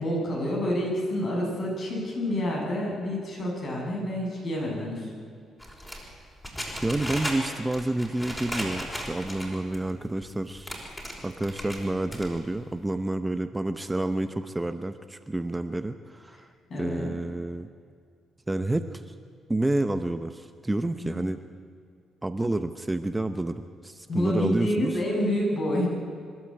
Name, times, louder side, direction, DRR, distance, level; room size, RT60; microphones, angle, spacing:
voice 1, 0.0-5.1 16.7-17.1 21.0-21.2 24.1-25.9, equal, 50° left, -2 dB, 7.2 m, -28 dB
sound 1, 5.6-9.8 10.2-10.3 10.5-11.8 12.1-12.6, equal, 10° left, 5.3 m, -35 dB
voice 2, 6.8-10.8 11.2-16.5 16.8-17.7 18.5-19.1 19.5-21.4 22.2-25.0, right 2 dB, 15° right, 9 dB, 0.8 m, -29 dB
26.0 x 12.5 x 8.8 m, 2.2 s
cardioid pair, 90°, 0 cm